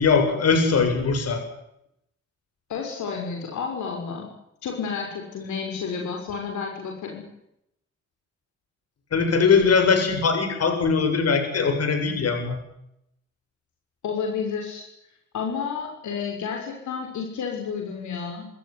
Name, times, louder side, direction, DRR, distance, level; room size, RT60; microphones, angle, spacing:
voice 1, 0.0-1.4 9.1-12.6, left 5 dB, 55° left, 6 dB, 7.9 m, -21 dB
voice 2, 2.7-4.3 4.6-7.2 14.0-14.9 15.3-18.5, left 6 dB, 70° left, 1 dB, 6.3 m, -31 dB
27.0 x 14.0 x 9.9 m, 0.79 s
cardioid pair, 90°, 30 cm